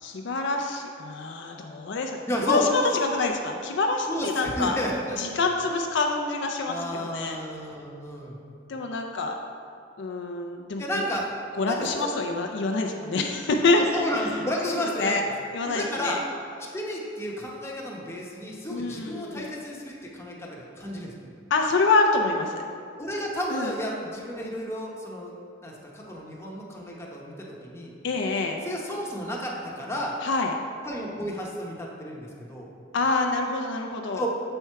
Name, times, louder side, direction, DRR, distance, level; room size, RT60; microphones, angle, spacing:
voice 1, 0.0-4.8 5.2-7.4 8.7-9.4 10.0-11.1 11.6-14.4 14.6-15.2 15.5-16.2 18.7-19.5 21.5-22.6 23.5-23.7 28.0-28.6 30.2-30.5 32.9-34.2, left 3 dB, 65° left, 3 dB, 0.5 m, -26 dB
voice 2, 2.3-2.6 4.1-5.3 6.7-8.4 10.8-11.3 11.7-12.1 13.7-15.3 15.7-16.2 16.7-21.3 23.0-25.3 25.6-27.9 28.6-30.2 30.8-32.7 34.1-34.3, equal, 15° left, -3 dB, 0.8 m, -32 dB
6.9 x 4.4 x 4.6 m, 2.4 s
head